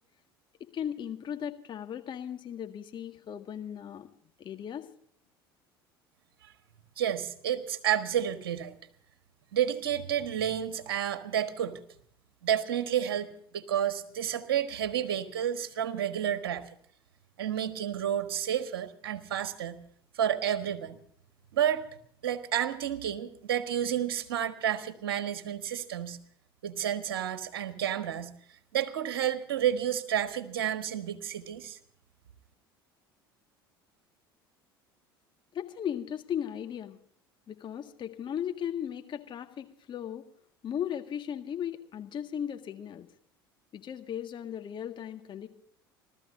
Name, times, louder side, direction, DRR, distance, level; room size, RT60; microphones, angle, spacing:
voice 1, 0.6-4.1 4.4-4.9 35.5-37.0 37.5-40.2 40.6-43.1 43.7-45.5, left 9 dB, 40° left, 6 dB, 1.7 m, -36 dB
voice 2, 7.0-8.8 9.5-11.8 12.4-16.6 17.4-19.8 20.1-21.0 21.5-21.8 22.2-26.2 26.6-28.3 28.7-31.8, right 10 dB, 75° right, 9 dB, 1.5 m, -30 dB
29.0 x 13.5 x 2.6 m, 0.63 s
hypercardioid pair, 70°, 12 cm